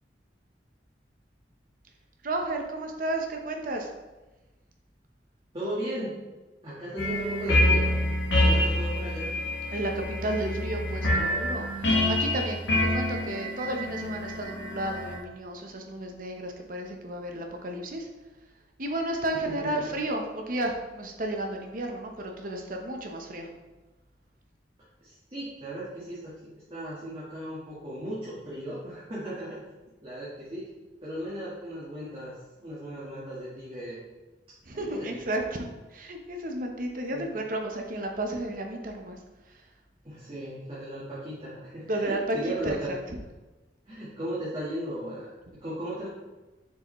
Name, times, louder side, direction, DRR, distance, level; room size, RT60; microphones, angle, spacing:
voice 1, 2.2-3.9 9.7-9.9 10.2-12.6 12.9-18.1 18.8-23.5 34.7-35.7 35.9-39.2 41.9-42.4 42.6-43.0, right 1 dB, 50° right, 3 dB, 0.8 m, -32 dB
voice 2, 5.5-6.2 6.6-8.0 8.4-9.3 19.3-19.9 25.0-26.4 26.7-29.6 30.0-30.6 31.0-34.0 34.7-35.2 37.1-37.3 40.0-43.0 43.9-45.3 45.6-46.1, right 1 dB, 30° right, -9 dB, 1.5 m, -36 dB
sound 1, 7.0-15.2, left 1 dB, 75° left, 1.5 m, -26 dB
7.0 x 4.8 x 3.1 m, 1.1 s
head